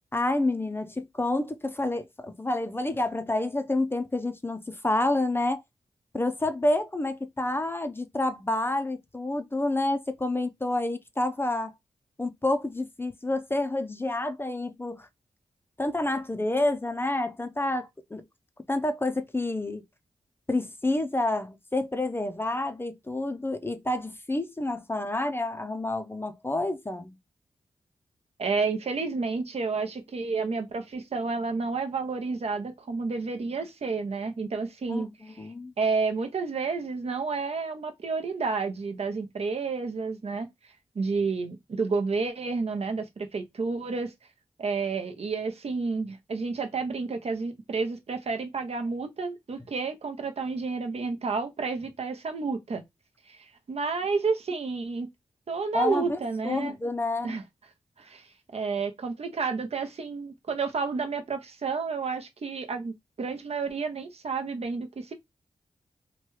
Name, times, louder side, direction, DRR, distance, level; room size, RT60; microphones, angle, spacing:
voice 1, 0.1-5.6 6.1-11.7 12.2-15.1 15.8-18.2 18.7-19.8 20.5-27.2 34.9-35.7 55.7-56.2 56.4-57.4, left 2 dB, 20° left, 0.5 m, -29 dB
voice 2, 28.4-35.1 35.4-35.5 35.8-40.5 40.9-44.1 44.6-52.8 53.3-55.1 55.5-56.7 57.2-57.4 58.0-58.3 58.5-65.1, right 4 dB, 55° right, 0.7 m, -30 dB
2.9 x 2.3 x 3.1 m
cardioid pair, 60°, 12 cm